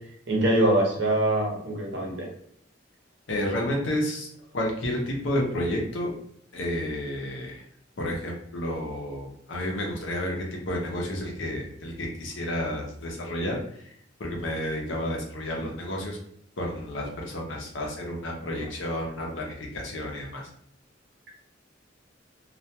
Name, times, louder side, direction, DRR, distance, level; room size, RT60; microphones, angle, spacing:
voice 1, 0.3-2.2, right 1 dB, 65° right, -2 dB, 0.8 m, -23 dB
voice 2, 3.3-4.3 4.5-6.1 6.5-7.6 8.0-13.9 14.2-16.2 16.6-20.4, left 1 dB, 75° left, 0 dB, 0.7 m, -31 dB
2.4 x 2.2 x 2.8 m, 0.68 s
head